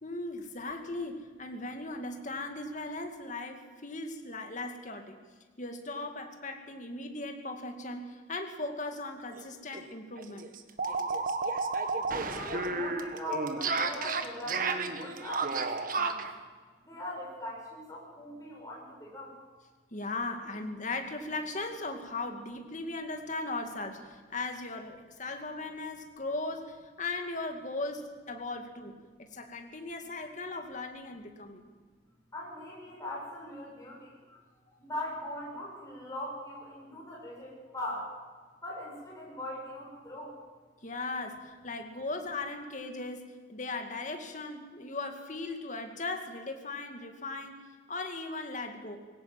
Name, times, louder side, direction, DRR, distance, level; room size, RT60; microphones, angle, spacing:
voice 1, 0.0-5.2 5.6-10.5 19.9-31.7 40.8-49.0, left 2 dB, 40° left, 5 dB, 2.3 m, -38 dB
sound 1, 9.3-9.4 9.7-9.8 10.2-16.3, right 4 dB, 50° right, 1.5 m, -32 dB
voice 2, 12.1-16.3 16.8-19.3 32.3-34.4 34.8-38.1 38.6-40.4, left 1 dB, 20° left, -4 dB, 6.9 m, -40 dB
21.0 x 17.5 x 7.8 m, 1.4 s
head